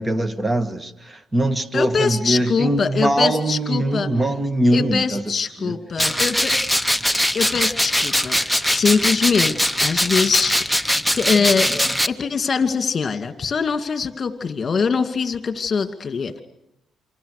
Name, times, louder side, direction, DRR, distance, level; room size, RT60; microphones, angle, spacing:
voice 1, 0.0-5.2 5.6-5.7 7.1-7.2, right 1 dB, 20° right, 10 dB, 1.9 m, -22 dB
voice 2, 1.7-4.1 4.7-6.5 7.3-8.4 8.6-10.9 11.1-16.4, left 5 dB, 40° left, 8 dB, 2.6 m, -23 dB
sound 1, 6.0-12.1, equal, ahead, 0.9 m, -21 dB
28.0 x 25.5 x 6.8 m, 0.86 s
cardioid pair, 90°, 0 cm